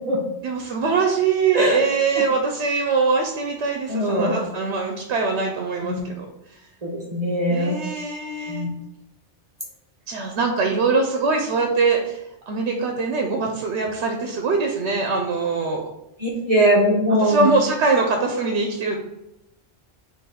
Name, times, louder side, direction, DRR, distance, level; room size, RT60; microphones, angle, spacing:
voice 1, 0.4-6.3 6.5-6.6 7.5-8.7 10.1-15.9 17.2-19.0, right 4 dB, 80° right, 2 dB, 0.9 m, -23 dB
voice 2, 3.9-4.4 5.8-6.0 6.8-7.8 8.5-8.7 16.2-17.5, equal, 40° right, -4 dB, 0.7 m, -21 dB
3.8 x 2.6 x 4.1 m, 0.89 s
omnidirectional pair, 1.1 m